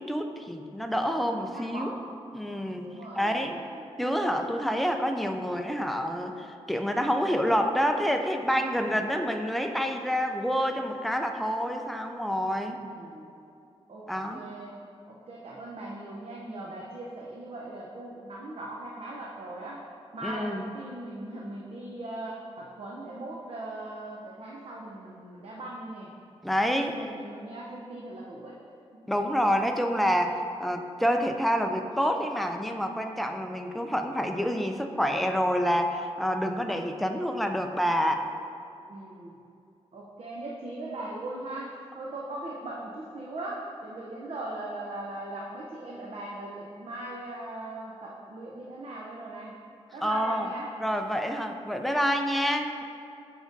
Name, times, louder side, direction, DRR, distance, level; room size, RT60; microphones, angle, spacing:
voice 1, 0.0-2.0 2.3-3.6 4.0-12.8 14.1-14.5 20.2-20.7 26.4-27.1 29.1-38.3 50.0-50.5 50.8-52.8, equal, ahead, 4 dB, 0.3 m, -28 dB
voice 2, 1.2-2.0 2.8-3.8 12.8-13.3 13.9-14.7 15.1-19.8 20.1-26.1 26.7-28.5 38.9-39.3 39.9-49.5 49.9-50.7, right 1 dB, 60° right, -3 dB, 0.6 m, -39 dB
7.1 x 5.0 x 2.6 m, 2.5 s
wide cardioid pair, 120°, 11 cm